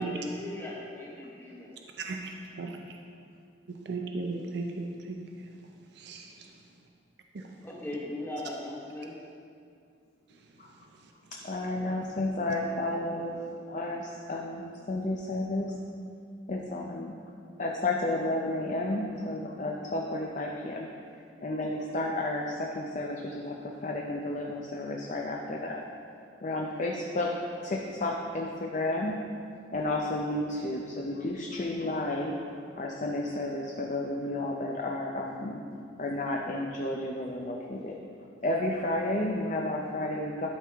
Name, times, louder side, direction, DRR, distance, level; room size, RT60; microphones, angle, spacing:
voice 1, 0.0-1.7 7.6-9.1 26.5-26.8, left 1 dB, 10° left, -5 dB, 1.1 m, -38 dB
voice 2, 2.0-3.0 3.7-5.5 5.9-6.5 7.3-7.5 11.0-11.1, right 3 dB, 55° right, 3 dB, 0.5 m, -37 dB
voice 3, 11.4-13.4 13.7-15.7 16.5-17.1 17.6-20.9 21.4-25.8 26.4-27.3 27.6-29.1 29.7-32.4 32.7-35.6 36.0-38.0 38.4-40.5, left 2 dB, 40° left, 0 dB, 0.5 m, -32 dB
12.0 x 4.6 x 3.5 m, 2.4 s
head